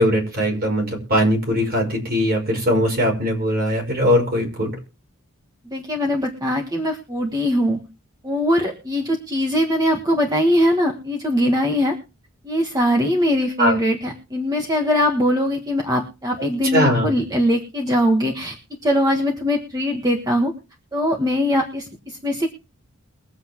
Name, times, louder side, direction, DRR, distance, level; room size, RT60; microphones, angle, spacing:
voice 1, 0.0-4.7 13.6-13.7 16.7-17.1, equal, 45° right, 1 dB, 5.4 m, -20 dB
voice 2, 5.6-7.8 8.2-12.0 12.4-18.6 18.8-20.5 20.9-22.5, equal, 20° right, 1 dB, 1.5 m, -21 dB
22.5 x 7.9 x 3.0 m, 0.32 s
head